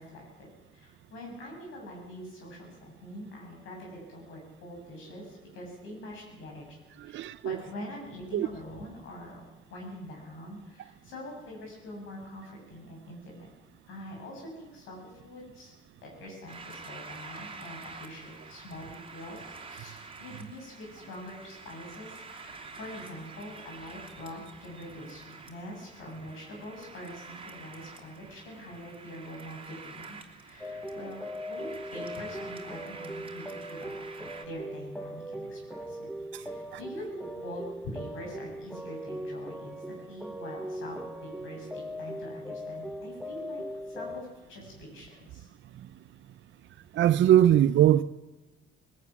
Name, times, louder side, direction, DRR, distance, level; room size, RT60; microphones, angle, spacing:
voice 1, 0.0-6.8 7.0-13.5 13.9-15.7 16.0-45.5, left 1 dB, 85° left, 7.5 m, -44 dB
voice 2, 7.0-7.6 8.3-8.5 36.3-36.8 45.8-45.9 46.9-48.0, right 11 dB, 70° right, 0.6 m, -22 dB
sound 1, 16.5-34.5, right 4 dB, 25° right, 2.9 m, -47 dB
sound 2, 30.6-44.2, equal, ahead, 1.3 m, -39 dB
20.5 x 14.5 x 9.6 m
cardioid pair, 90°, 20 cm